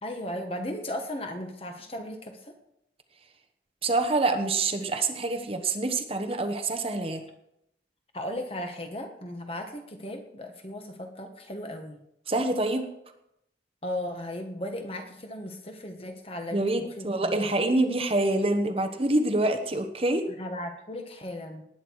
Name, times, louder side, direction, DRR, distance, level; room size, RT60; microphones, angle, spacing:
voice 1, 0.0-2.5 8.1-12.0 13.8-17.5 20.4-21.6, left 1 dB, 30° left, 4 dB, 1.5 m, -36 dB
voice 2, 3.8-7.2 12.3-12.9 16.5-20.3, right 2 dB, 30° right, 5 dB, 1.1 m, -26 dB
19.0 x 9.1 x 4.8 m, 0.80 s
head